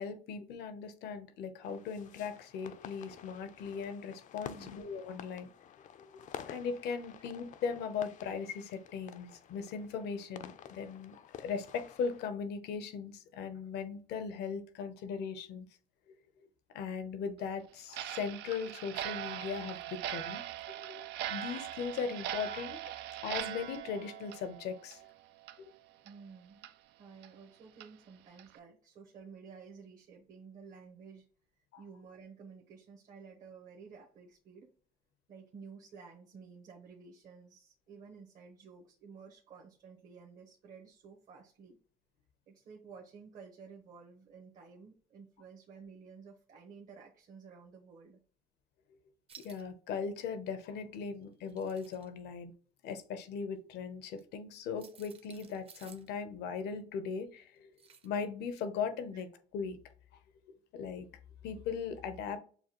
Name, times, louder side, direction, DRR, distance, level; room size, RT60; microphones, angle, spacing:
voice 1, 0.0-5.5 6.0-6.1 6.5-15.7 16.7-20.4 20.7-22.8 23.2-25.0 25.6-25.7 31.7-31.8 49.4-52.5 52.8-57.7 58.0-59.3 59.5-59.8 60.7-61.1 61.4-62.4, left 6 dB, 80° left, 10 dB, 0.8 m, -38 dB
sound 1, 1.6-12.3, left 9 dB, 50° left, 0.4 m, -51 dB
voice 2, 4.4-4.8 26.0-26.7 27.0-31.3 31.8-34.7 35.3-41.8 42.5-48.2 59.1-59.2, right 5 dB, 55° right, 0 dB, 1.1 m, -53 dB
Clock, 17.9-25.1 25.4-25.6 26.1-26.2 26.6-26.7 27.2-27.3 27.8-27.9 28.4-28.6, right 13 dB, 85° right, 0.4 m, -41 dB
sound 2, 49.3-49.6 51.3-52.1 54.1-54.2 54.8-56.1 57.8-58.2 58.6-58.7, right 6 dB, 35° right, 0.7 m, -56 dB
6.8 x 2.3 x 3.0 m, 0.42 s
cardioid pair, 110°, 17 cm